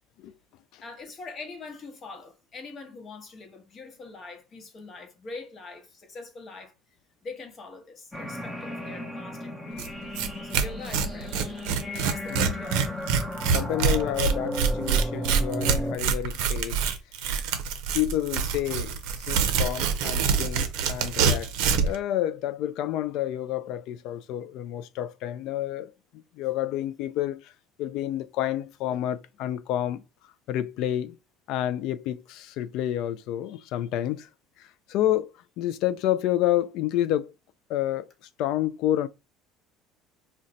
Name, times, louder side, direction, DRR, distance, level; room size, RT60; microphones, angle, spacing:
voice 1, 0.8-6.7 7.2-9.9 10.4-12.9, left 3 dB, 40° left, 0.9 m, -43 dB
sound 1, 8.1-16.0, equal, 10° left, 0.8 m, -35 dB
Tearing, 9.8-9.9 10.2-10.3 10.5-22.0, right 6 dB, 75° right, 0.5 m, -25 dB
voice 2, 13.5-16.8 17.9-21.5 21.8-27.5 27.8-30.0 30.5-31.2 31.5-34.3 34.6-35.3 35.6-37.3 37.7-38.1 38.4-39.1, left 12 dB, 70° left, 0.3 m, -29 dB
2.5 x 2.2 x 3.9 m
supercardioid pair, 90°, 0 cm